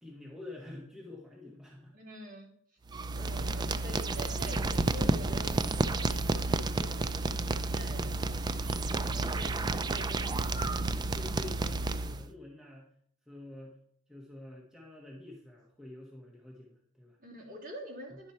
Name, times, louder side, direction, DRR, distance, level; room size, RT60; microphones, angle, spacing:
voice 1, 0.0-2.0 3.0-3.2 8.0-8.2 10.9-12.9 13.3-13.8 14.1-17.2 18.1-18.2, left 2 dB, 5° right, -3 dB, 1.3 m, -48 dB
voice 2, 1.9-2.8 3.1-5.6 5.8-7.0 7.7-10.8 17.2-18.3, equal, 40° right, -4 dB, 2.8 m, -47 dB
sound 1, 2.9-12.3, right 2 dB, 20° right, 0.3 m, -31 dB
10.5 x 5.2 x 4.3 m, 0.63 s
head